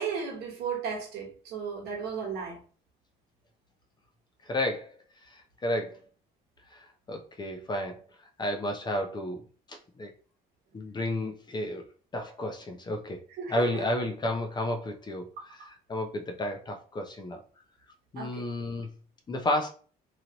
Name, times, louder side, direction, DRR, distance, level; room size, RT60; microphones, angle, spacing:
voice 1, 0.0-2.6 13.4-13.6 15.6-15.7 18.2-18.4, right 6 dB, 80° right, 1.2 m, -34 dB
voice 2, 4.4-5.0 5.2-6.0 6.7-8.0 8.4-10.1 10.7-11.9 12.1-13.2 13.5-17.4 18.1-18.9 19.3-19.7, left 1 dB, 25° left, 0.6 m, -32 dB
3.0 x 2.6 x 2.9 m
cardioid pair, 110°, 17 cm